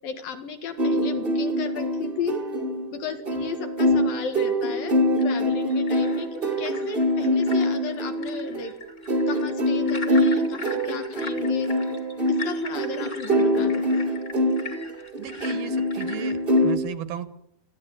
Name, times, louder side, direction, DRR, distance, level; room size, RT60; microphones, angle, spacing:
voice 1, 0.0-2.4 2.9-8.7 9.3-11.7 12.3-14.1, left 6 dB, 60° left, 6 dB, 3.4 m, -34 dB
sound 1, 0.8-16.8, equal, 25° right, 1.3 m, -24 dB
sound 2, 5.2-16.7, left 4 dB, 20° left, 2.3 m, -41 dB
voice 2, 15.2-17.3, right 10 dB, 70° right, 12 dB, 2.9 m, -36 dB
20.0 x 15.0 x 9.2 m, 0.74 s
omnidirectional pair, 4.8 m